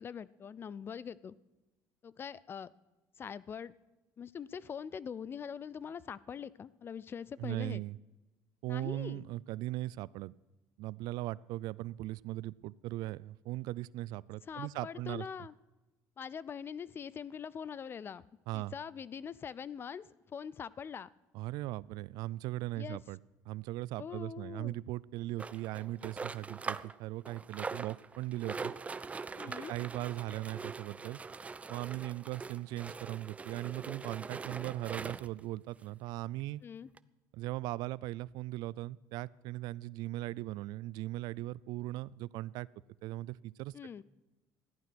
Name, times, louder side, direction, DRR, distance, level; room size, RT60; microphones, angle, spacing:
voice 1, 0.0-1.3 2.0-2.7 3.2-3.7 4.2-7.8 8.7-9.2 14.4-15.5 16.2-18.3 18.5-21.1 22.8-23.0 24.0-24.7 29.3-29.7 36.6-36.9 43.7-44.0, left 7 dB, 35° left, 20 dB, 0.5 m, -43 dB
voice 2, 7.4-8.0 8.6-10.3 10.8-15.3 18.5-18.7 21.3-23.2 23.5-28.7 29.4-31.2 31.7-36.6 37.3-42.7 43.0-43.7, right 17 dB, 75° right, 22 dB, 0.4 m, -39 dB
sound 1, 25.4-27.0 27.2-35.4 36.1-36.2 36.4-36.5 37.0-37.1, right 4 dB, 20° right, 0.4 m, -42 dB
14.5 x 11.0 x 6.0 m, 1.1 s
cardioid pair, 120°, 7 cm